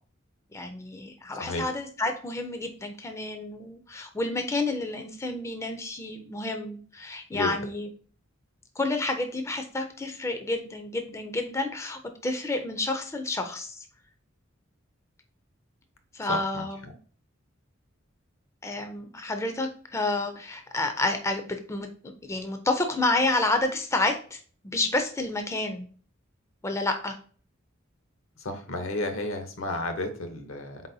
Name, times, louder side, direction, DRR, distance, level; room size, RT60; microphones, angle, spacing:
voice 1, 0.5-7.9 8.8-13.9 16.1-16.8 18.6-25.9 26.6-27.2, left 2 dB, 15° left, 5 dB, 0.4 m, -30 dB
voice 2, 16.3-16.9 28.4-30.8, left 2 dB, 75° left, 7 dB, 0.8 m, -32 dB
4.1 x 4.0 x 2.6 m, 0.42 s
head